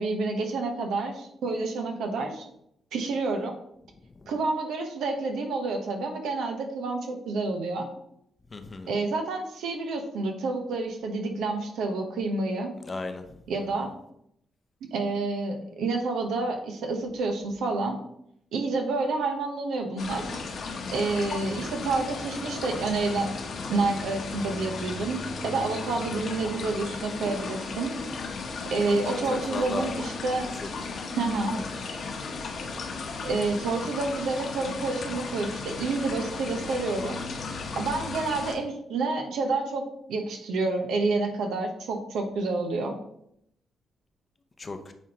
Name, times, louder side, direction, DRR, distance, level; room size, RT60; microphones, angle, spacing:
voice 1, 0.0-2.5 2.9-3.5 4.3-7.9 8.9-12.7 13.5-13.9 14.9-18.0 18.5-20.4 20.9-23.4 23.7-27.9 28.7-30.5 31.2-31.6 33.2-37.2 37.8-43.0, right 3 dB, 85° right, 3 dB, 1.0 m, -29 dB
voice 2, 4.0-4.3 8.5-8.9 12.8-13.4 13.8-13.9 29.0-30.0 30.5-30.7 31.5-31.8 44.6-44.9, left 3 dB, 35° left, 8 dB, 0.6 m, -36 dB
sound 1, 20.0-38.5, left 4 dB, 65° left, 1.1 m, -35 dB
9.1 x 3.6 x 2.9 m, 0.74 s
cardioid pair, 85°, 0 cm